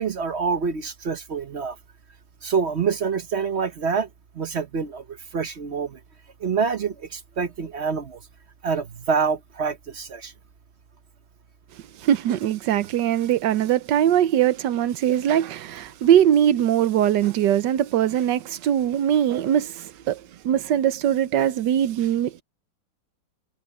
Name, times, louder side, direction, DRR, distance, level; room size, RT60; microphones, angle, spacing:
voice 1, 0.0-1.8 2.4-4.1 4.4-6.0 6.4-8.2 8.6-10.3 15.1-15.2, right 5 dB, 45° right, 0.9 m, -26 dB
voice 2, 12.0-22.4, right 10 dB, 70° right, 1.4 m, -21 dB
omnidirectional pair, 2.1 m